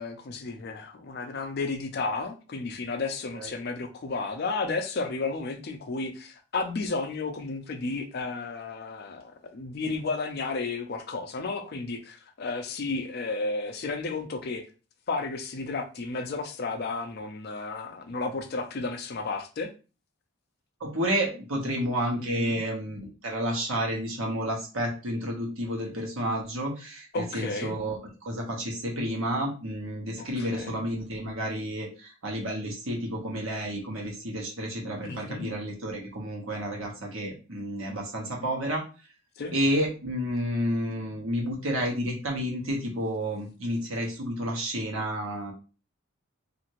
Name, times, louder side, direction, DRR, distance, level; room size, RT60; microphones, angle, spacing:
voice 1, 0.0-14.7 15.1-19.7 22.2-22.6 27.1-27.7 30.2-30.8 35.0-35.5 39.4-39.5, left 3 dB, 50° left, 0.4 m, -33 dB
voice 2, 20.8-38.8 39.5-45.5, equal, 70° right, 1.1 m, -30 dB
2.8 x 2.5 x 2.9 m
head